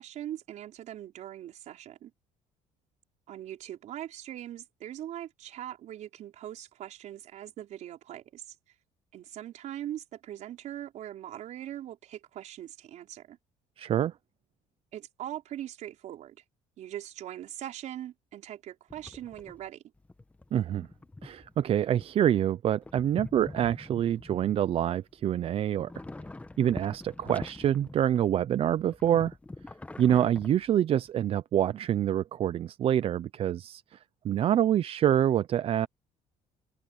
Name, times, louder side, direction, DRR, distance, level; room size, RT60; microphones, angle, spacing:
voice 1, 0.0-2.1 3.3-8.6 9.1-13.4 14.9-16.4 16.8-19.8, right 12 dB, 60° right, 4.7 m, -41 dB
voice 2, 13.8-14.1 20.5-20.9 21.2-25.9 26.6-29.3 30.0-34.0 34.2-35.9, right 10 dB, 45° right, 0.5 m, -26 dB
sound 1, 18.9-19.7 20.0-22.5 22.8-25.4 25.7-28.4 28.7-31.1, left 2 dB, 10° left, 1.1 m, -44 dB
open air
cardioid pair, 130°, 14 cm